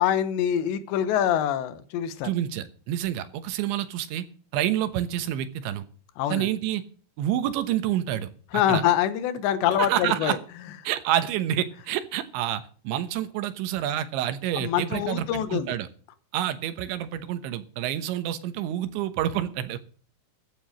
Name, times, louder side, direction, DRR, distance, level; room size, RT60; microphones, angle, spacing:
voice 1, 0.0-2.3 6.2-6.5 8.5-10.4 14.5-15.7, left 10 dB, 85° left, 13 dB, 3.2 m, -25 dB
voice 2, 2.2-4.3 4.5-5.8 6.3-6.8 7.2-8.8 9.8-10.4 10.9-15.9 16.3-19.8, right 12 dB, 85° right, 11 dB, 3.5 m, -28 dB
14.5 x 8.2 x 6.4 m, 0.42 s
omnidirectional pair, 5.1 m